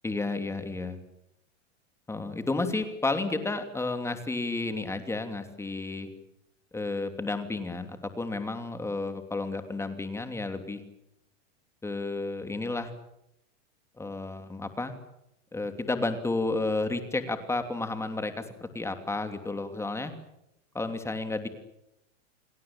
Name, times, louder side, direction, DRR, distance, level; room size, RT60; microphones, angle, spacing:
voice 1, 0.0-1.0 2.1-6.1 6.7-10.8 11.8-12.9 14.0-14.9 15.5-20.1 20.7-21.5, left 3 dB, 5° left, 8 dB, 2.9 m, -32 dB
28.5 x 19.5 x 8.8 m, 0.84 s
supercardioid pair, 140°, 37 cm